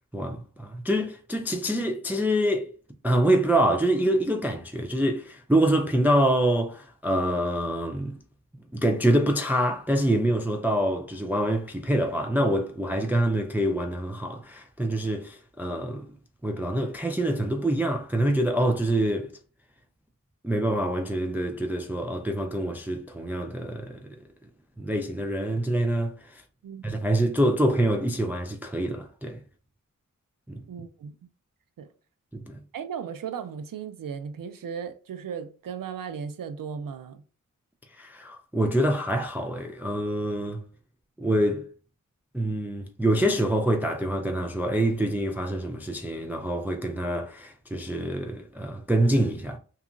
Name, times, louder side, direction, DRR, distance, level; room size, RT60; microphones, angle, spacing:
voice 1, 0.1-2.7 3.0-8.2 8.7-16.1 16.4-19.3 20.4-24.0 24.8-26.4 26.8-29.4 30.5-30.7 32.3-32.6 38.0-40.7 41.2-41.7 42.3-49.6, right 1 dB, 5° right, 0.3 m, -25 dB
voice 2, 30.7-31.1 31.8-31.9 32.7-37.2, right 7 dB, 85° right, 0.5 m, -36 dB
2.8 x 2.4 x 2.4 m
wide cardioid pair, 105°, 33 cm